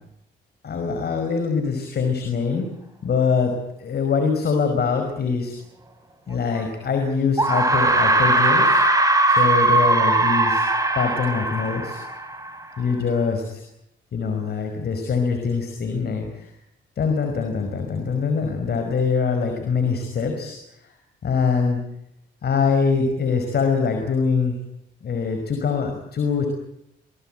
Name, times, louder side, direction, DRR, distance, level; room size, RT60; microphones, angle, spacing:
voice 1, 0.6-2.7 3.0-3.5 3.8-5.5 6.3-8.8 9.3-10.6 11.0-12.0 12.8-13.6 14.1-16.5 17.0-20.6 20.8-20.9 21.2-21.8 22.4-24.6 25.0-26.5, left 5 dB, 55° left, 5 dB, 5.5 m, -23 dB
sound 1, 6.6-6.7 7.4-12.6, right 2 dB, 15° right, 5.6 m, -19 dB
27.0 x 20.0 x 9.2 m, 0.79 s
cardioid pair, 90°, 20 cm